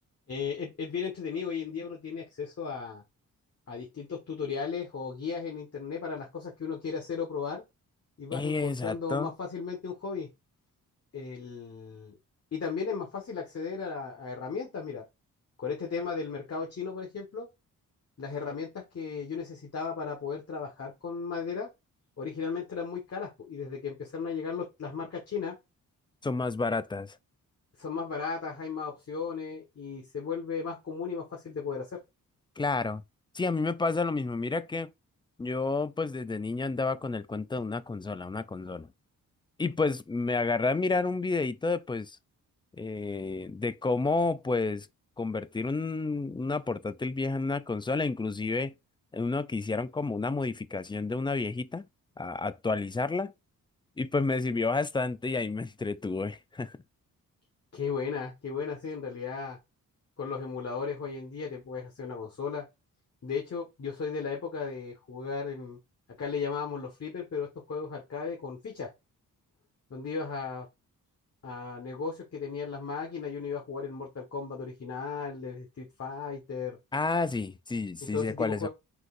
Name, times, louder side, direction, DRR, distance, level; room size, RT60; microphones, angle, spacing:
voice 1, 0.3-3.0 3.7-7.6 8.2-10.3 11.1-12.2 12.5-15.0 15.6-17.5 18.2-21.7 22.2-25.6 27.8-32.0 57.7-59.6 60.2-62.7 63.2-65.8 66.2-68.9 69.9-70.7 71.4-76.8 78.0-78.7, left 5 dB, 45° left, 1.5 m, -35 dB
voice 2, 8.3-9.3 26.2-27.2 32.6-33.0 33.3-34.9 35.4-38.9 39.6-42.2 42.8-44.9 45.2-48.7 49.1-51.9 52.2-53.3 54.0-56.7 76.9-78.7, left 3 dB, 15° left, 0.3 m, -30 dB
4.8 x 3.9 x 2.6 m
cardioid pair, 90°, 34 cm